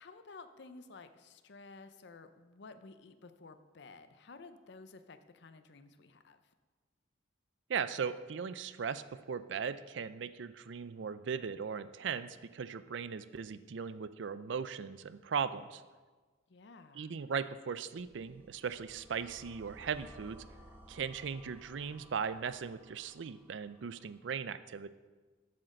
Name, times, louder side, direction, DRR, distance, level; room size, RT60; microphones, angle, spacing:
voice 1, 0.0-6.4 16.5-17.2, left 3 dB, 65° left, 10 dB, 0.6 m, -53 dB
voice 2, 7.7-15.8 17.0-20.4 20.9-24.9, right 6 dB, 70° right, 14 dB, 0.4 m, -38 dB
sound 1, 18.0-24.1, equal, 10° right, 1.4 m, -58 dB
8.6 x 6.4 x 6.5 m, 1.4 s
head